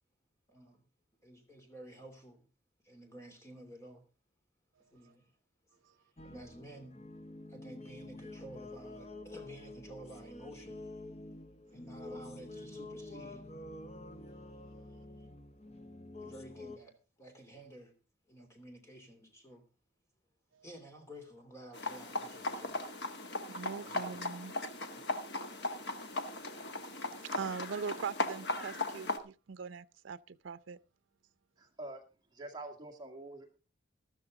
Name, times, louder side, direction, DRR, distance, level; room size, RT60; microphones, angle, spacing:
voice 1, 0.5-0.8 1.2-2.5 2.8-4.0 4.9-5.3 5.7-5.8 6.2-7.0 7.5-10.8 11.7-13.5 14.8-15.2 16.2-17.9 18.3-19.6 20.6-22.9 23.8-24.2 24.9-25.0, right 1 dB, 15° left, 3.1 m, -52 dB
sound 1, 6.2-16.8, left 2 dB, 35° left, 0.9 m, -48 dB
sound 2, 21.7-29.2, left 2 dB, 60° left, 1.5 m, -38 dB
voice 2, 23.5-24.5 27.2-30.8, right 5 dB, 85° right, 0.5 m, -41 dB
voice 3, 31.6-32.0 32.3-33.6, right 2 dB, 20° right, 1.9 m, -46 dB
13.0 x 13.0 x 3.7 m
head